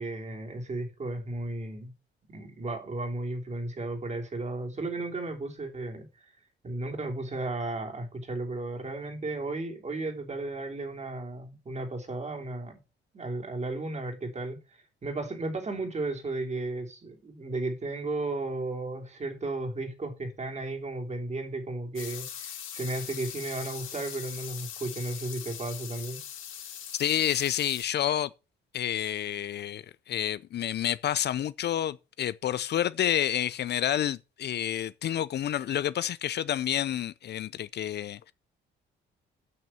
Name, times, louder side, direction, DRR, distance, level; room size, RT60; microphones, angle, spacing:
voice 1, 0.0-1.9 2.3-6.1 6.6-12.8 13.1-14.6 15.0-26.2, right 2 dB, 35° right, 3.4 m, -34 dB
sound 1, 22.0-27.8, left 9 dB, 80° left, 2.8 m, -41 dB
voice 2, 27.0-28.3 28.7-38.3, left 11 dB, 60° left, 0.6 m, -29 dB
8.9 x 6.1 x 7.5 m
cardioid pair, 90°, 20 cm